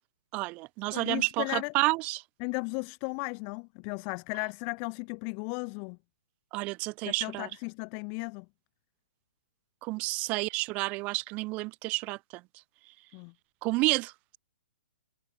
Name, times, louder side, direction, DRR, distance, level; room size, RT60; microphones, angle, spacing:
voice 1, 0.3-2.2 6.5-7.5 9.8-12.4 13.6-14.4, right 24 dB, 25° right, 0.4 m, -30 dB
voice 2, 0.9-1.7 2.4-6.0 7.2-8.4 13.1-13.3, left 40 dB or more, 35° left, 1.6 m, -35 dB
hypercardioid pair, 140°, 5 cm